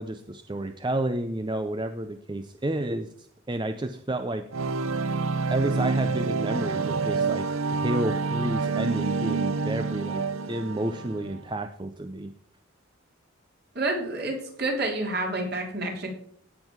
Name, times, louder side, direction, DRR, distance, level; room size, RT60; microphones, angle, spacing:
voice 1, 0.0-4.5 5.5-12.3, right 1 dB, 20° right, 9 dB, 0.5 m, -31 dB
sound 1, 4.5-11.4, right 4 dB, 80° right, 0.6 m, -28 dB
voice 2, 13.8-16.1, right 2 dB, 50° right, 1 dB, 3.5 m, -29 dB
17.0 x 7.4 x 4.6 m, 0.68 s
head